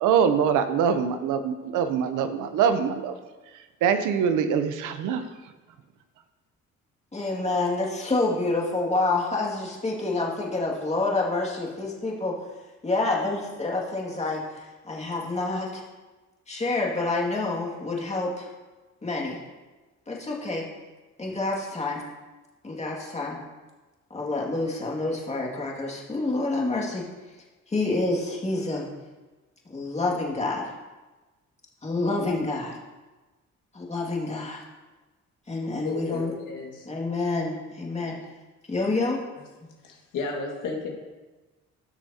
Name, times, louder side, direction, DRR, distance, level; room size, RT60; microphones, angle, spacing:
voice 1, 0.0-3.1 3.8-5.2, right 7 dB, 90° right, 9 dB, 0.7 m, -23 dB
voice 2, 7.1-12.4 12.8-15.8 16.5-18.5 19.0-19.4 20.1-20.6 21.2-22.0 22.6-23.4 24.1-27.1 27.7-28.9 29.7-30.7 31.8-32.8 33.7-34.6 35.5-36.3 36.9-38.2 38.7-39.2, left 2 dB, 20° left, -2 dB, 2.1 m, -28 dB
voice 3, 35.8-36.9 38.8-38.9 39.8-40.9, left 3 dB, 85° left, 0 dB, 1.9 m, -33 dB
14.5 x 6.4 x 2.8 m, 1.2 s
cardioid pair, 90°, 30 cm